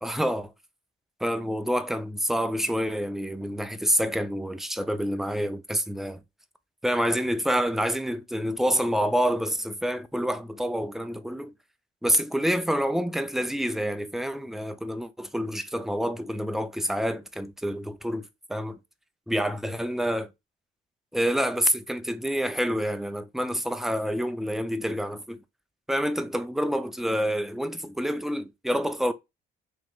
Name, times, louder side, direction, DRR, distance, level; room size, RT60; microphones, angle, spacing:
voice 1, 0.0-0.5 1.2-6.2 6.8-11.5 12.0-18.8 19.3-20.3 21.1-25.4 25.9-29.1, equal, ahead, 0.4 m, -27 dB
3.3 x 3.0 x 2.3 m
cardioid pair, 90°, 20 cm